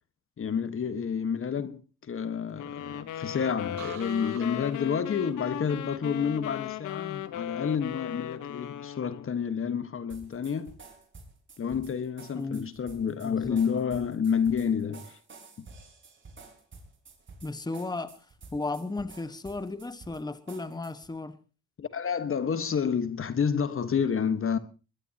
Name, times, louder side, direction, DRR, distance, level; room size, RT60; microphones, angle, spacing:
voice 1, 0.4-10.8 11.6-15.2 15.6-15.7 21.8-24.6, left 7 dB, 45° left, 1.5 m, -29 dB
sound 1, 2.6-9.4, left 11 dB, 80° left, 1.3 m, -37 dB
sound 2, 3.8-7.6 7.9-8.4, right 11 dB, 70° right, 1.5 m, -50 dB
sound 3, 10.1-21.1, right 3 dB, 40° right, 5.2 m, -51 dB
voice 2, 12.3-12.7 13.2-13.6 17.4-18.1 18.5-21.4, left 3 dB, 15° left, 1.5 m, -35 dB
21.5 x 21.0 x 3.0 m
cardioid pair, 90°, 30 cm